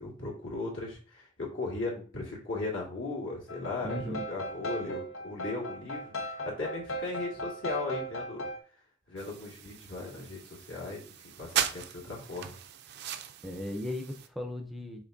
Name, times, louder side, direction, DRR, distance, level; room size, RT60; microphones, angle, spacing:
voice 1, 0.0-8.5 9.1-12.6, left 3 dB, 70° left, -3 dB, 2.0 m, -37 dB
sound 1, 3.5-8.6, right 1 dB, 90° left, 0.7 m, -37 dB
voice 2, 3.8-4.2 13.4-15.0, left 1 dB, ahead, 3 dB, 0.5 m, -36 dB
sound 2, 9.2-14.3, right 9 dB, 55° right, 0.4 m, -38 dB
5.8 x 3.4 x 2.6 m, 0.39 s
head